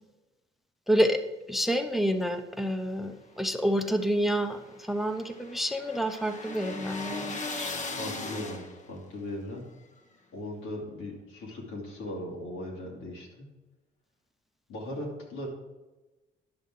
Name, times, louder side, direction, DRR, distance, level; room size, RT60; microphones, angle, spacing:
voice 1, 0.9-7.7, equal, ahead, 7 dB, 0.6 m, -28 dB
sound 1, 3.5-9.0, left 3 dB, 40° left, 1.1 m, -38 dB
voice 2, 8.0-8.6 8.9-9.7 10.3-13.5 14.7-15.5, left 1 dB, 90° left, -2 dB, 2.5 m, -38 dB
10.5 x 6.2 x 3.8 m, 1.1 s
cardioid pair, 90°, 20 cm